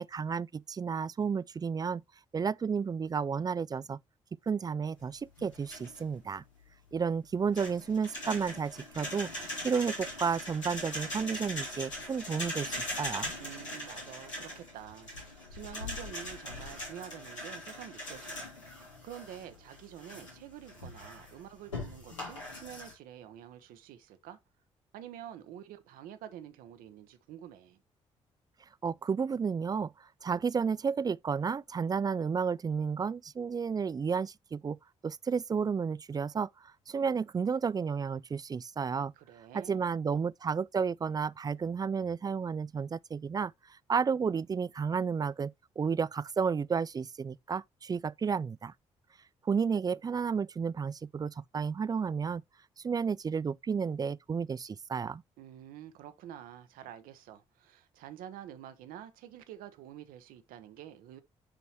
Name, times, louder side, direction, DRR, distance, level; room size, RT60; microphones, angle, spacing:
voice 1, 0.0-2.0 2.3-4.0 4.5-6.4 6.9-9.3 9.6-13.3 28.8-29.9 30.2-34.8 35.0-36.5 36.9-39.1 39.5-43.5 43.9-48.7 49.5-52.4 52.8-55.2, right 6 dB, 25° right, 0.3 m, -32 dB
sound 1, 5.4-6.2 7.5-22.9, left 1 dB, 90° left, 2.3 m, -41 dB
voice 2, 13.4-18.5 19.0-24.4 24.9-27.8 39.0-39.9 55.4-61.2, right 11 dB, 65° right, 0.9 m, -48 dB
9.8 x 4.0 x 3.0 m
figure-of-eight pair, 40°, 15 cm